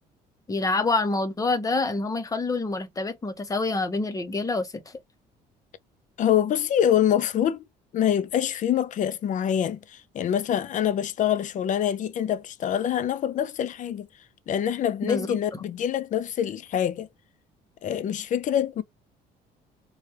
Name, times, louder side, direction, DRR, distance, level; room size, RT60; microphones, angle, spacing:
voice 1, 0.5-4.8 15.0-15.6, left 3 dB, 20° left, 0.8 m, -27 dB
voice 2, 6.2-7.6 7.9-14.1 14.5-17.1 17.8-18.8, left 10 dB, 50° left, 0.5 m, -25 dB
3.2 x 2.4 x 4.1 m
cardioid pair, 110°, 17 cm